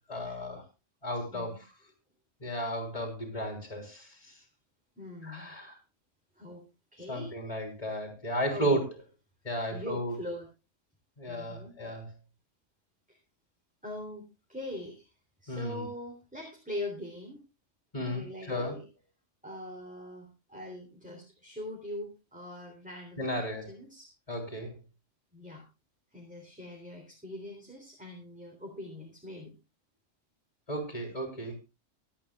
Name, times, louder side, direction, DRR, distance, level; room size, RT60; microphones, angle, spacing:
voice 1, 0.1-0.6 1.0-1.6 2.4-4.2 5.2-5.8 7.1-8.9 9.4-10.2 11.2-12.1 15.5-15.9 17.9-18.8 23.2-23.7 24.3-24.7 30.7-31.5, equal, 30° left, 3 dB, 3.8 m, -34 dB
voice 2, 5.0-5.5 6.4-7.3 8.5-8.8 9.7-10.5 11.3-11.7 13.1-13.2 13.8-15.1 15.4-17.4 18.0-18.8 19.4-24.1 25.3-25.7 26.1-29.5, left 1 dB, 5° right, 0 dB, 3.6 m, -42 dB
24.5 x 8.8 x 2.4 m, 0.26 s
omnidirectional pair, 1.3 m